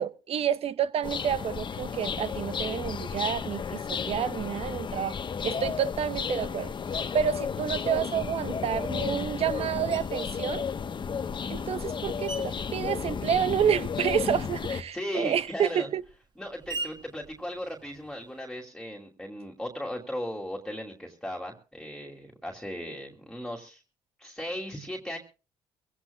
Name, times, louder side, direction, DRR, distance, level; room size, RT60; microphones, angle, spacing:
voice 1, 0.0-5.2 5.4-10.7 11.5-16.0, right 9 dB, 60° right, 1.0 m, -29 dB
sound 1, 1.0-14.8, left 6 dB, 40° left, 1.1 m, -33 dB
Screech, 9.9-10.4 11.1-13.8 14.1-18.4, right 3 dB, 40° right, 2.0 m, -44 dB
voice 2, 14.9-15.9 16.4-23.8 24.2-25.2, equal, 5° left, 2.6 m, -37 dB
23.5 x 16.0 x 2.3 m
supercardioid pair, 70°, 12 cm